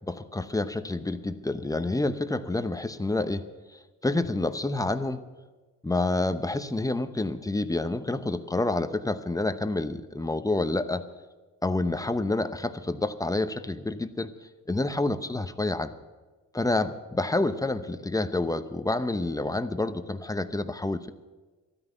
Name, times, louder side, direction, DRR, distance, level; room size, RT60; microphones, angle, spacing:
voice 1, 0.1-3.4 3.7-5.2 5.8-11.0 11.6-14.3 14.7-15.9 16.5-21.1, left 2 dB, 10° left, 11 dB, 0.8 m, -28 dB
13.0 x 9.5 x 9.2 m, 1.3 s
cardioid pair, 90°, 30 cm